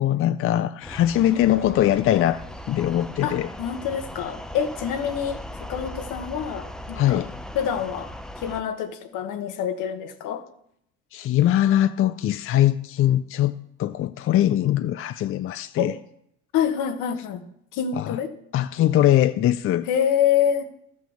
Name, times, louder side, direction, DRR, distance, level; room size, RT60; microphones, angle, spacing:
voice 1, 0.0-3.5 6.9-7.3 11.1-13.5 13.8-15.9 18.0-18.2 18.5-19.9, left 12 dB, 45° left, 0.5 m, -21 dB
sound 1, 0.8-8.6, left 1 dB, ahead, 0.6 m, -38 dB
voice 2, 1.3-1.7 3.2-7.3 7.5-8.1 8.4-10.4 15.8-15.9 16.5-17.5 17.7-18.3 19.9-20.7, left 8 dB, 70° left, 1.4 m, -26 dB
13.5 x 6.2 x 7.2 m
cardioid pair, 110°, 32 cm